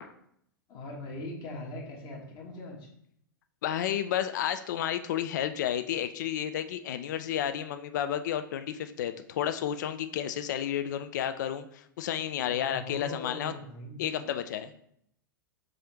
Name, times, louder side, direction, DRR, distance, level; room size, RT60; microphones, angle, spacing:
voice 1, 0.7-2.9 12.4-14.4, left 2 dB, 35° left, -1 dB, 1.2 m, -41 dB
voice 2, 3.6-13.5 14.0-14.7, left 10 dB, 55° left, 10 dB, 0.4 m, -31 dB
3.8 x 3.2 x 4.4 m, 0.70 s
figure-of-eight pair, 95°, 12 cm